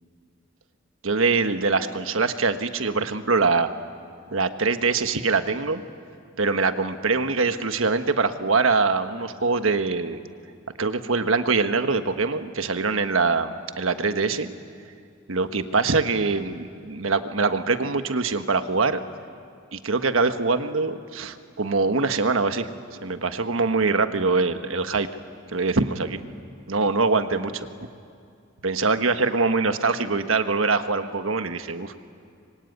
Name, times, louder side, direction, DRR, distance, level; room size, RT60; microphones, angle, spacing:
voice 1, 1.0-3.7 4.3-5.8 6.4-10.2 10.8-14.5 15.3-19.0 19.7-22.7 23.0-25.1 25.5-26.2 26.7-27.7 28.6-31.9, right 4 dB, 80° right, 9 dB, 1.3 m, -23 dB
26.0 x 23.5 x 9.4 m, 2.4 s
head